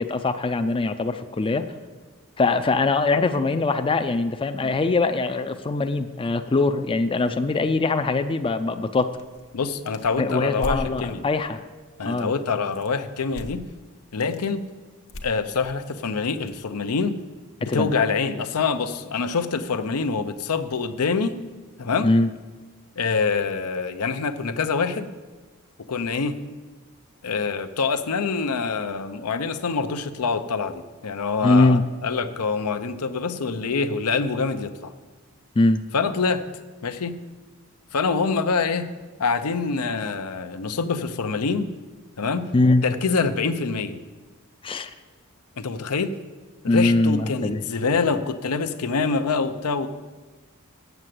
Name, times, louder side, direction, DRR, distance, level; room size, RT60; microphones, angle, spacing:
voice 1, 0.0-1.7 2.4-9.1 10.2-11.6 12.0-12.3 17.6-17.9 22.0-22.3 31.4-31.8 35.6-35.8 42.5-42.8 44.6-44.9 46.7-47.6, left 3 dB, 25° left, 9 dB, 0.4 m, -22 dB
sound 1, 9.1-10.9 12.7-13.0 13.3-13.7 14.0-14.5 15.1-16.6, left 1 dB, 65° left, 1.0 m, -37 dB
voice 2, 9.5-11.3 12.0-13.7 14.1-14.6 15.2-17.2 17.6-21.4 21.8-22.1 23.0-25.1 25.9-26.4 27.2-34.9 35.9-36.4 36.8-37.1 37.9-38.9 39.2-41.7 42.2-42.5 42.8-44.0 45.6-46.1 46.6-49.9, left 4 dB, 90° left, 9 dB, 0.6 m, -25 dB
8.0 x 7.7 x 7.5 m, 1.3 s
head